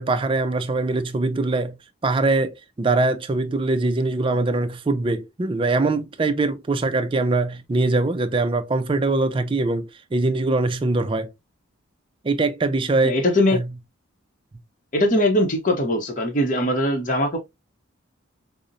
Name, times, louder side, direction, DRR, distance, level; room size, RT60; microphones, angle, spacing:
voice 1, 0.0-1.7 2.0-11.3 12.2-13.2 13.5-13.6, right 2 dB, 25° right, 0.4 m, -22 dB
voice 2, 13.0-13.6 14.9-17.4, left 1 dB, 40° left, 0.7 m, -21 dB
5.0 x 2.0 x 2.6 m
head